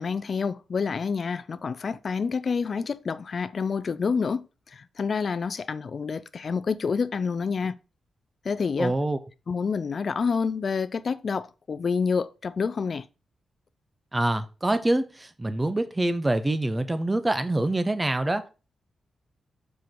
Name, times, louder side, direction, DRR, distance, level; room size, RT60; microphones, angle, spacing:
voice 1, 0.0-4.5 4.7-7.7 8.4-8.9 9.5-13.0, left 5 dB, 40° left, 0.4 m, -28 dB
voice 2, 8.8-9.2 14.1-18.5, right 1 dB, 15° right, 0.6 m, -25 dB
7.3 x 4.5 x 4.6 m
wide cardioid pair, 170°, 0 cm